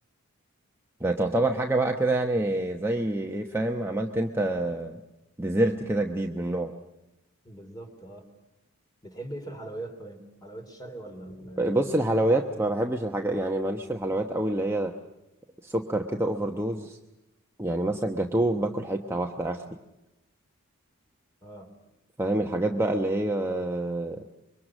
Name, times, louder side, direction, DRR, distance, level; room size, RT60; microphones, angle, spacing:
voice 1, 1.0-5.0 5.4-6.7 11.6-14.9 15.6-17.0 17.6-19.6 22.2-24.2, right 1 dB, 10° right, 2 dB, 1.0 m, -27 dB
voice 2, 7.4-8.3 9.0-12.1 12.4-12.7 21.4-21.7, right 1 dB, 20° left, 5 dB, 3.5 m, -41 dB
26.0 x 23.5 x 6.3 m, 0.95 s
head